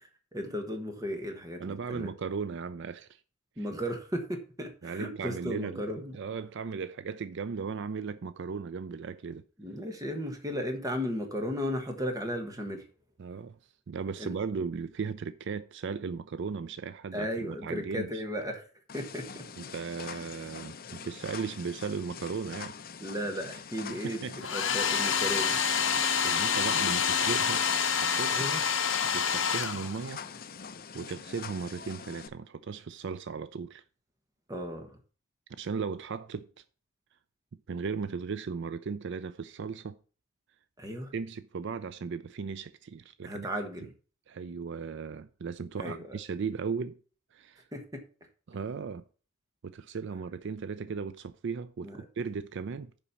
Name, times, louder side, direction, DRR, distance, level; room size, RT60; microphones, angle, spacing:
voice 1, 0.3-2.1 3.6-6.1 9.6-12.9 14.2-14.3 17.1-18.7 18.9-19.4 23.0-25.6 28.3-28.6 34.5-35.0 40.8-41.1 43.2-43.9 45.8-46.2 47.7-48.0 51.8-52.1, equal, 15° right, 1.3 m, -35 dB
voice 2, 1.6-3.2 3.6-3.7 4.8-5.9 6.1-9.4 13.2-13.6 13.9-18.2 19.6-22.8 23.9-24.4 26.2-27.6 28.0-28.4 29.1-30.2 30.9-33.8 35.6-36.5 37.7-40.0 41.1-43.5 44.3-47.0 47.3-47.6 48.5-49.0 49.6-53.0, right 5 dB, 60° right, 0.4 m, -36 dB
sound 1, 18.9-32.3, left 6 dB, 45° left, 0.6 m, -44 dB
Domestic sounds home sounds, 24.4-30.3, left 7 dB, 65° left, 1.0 m, -27 dB
7.0 x 5.3 x 7.0 m
head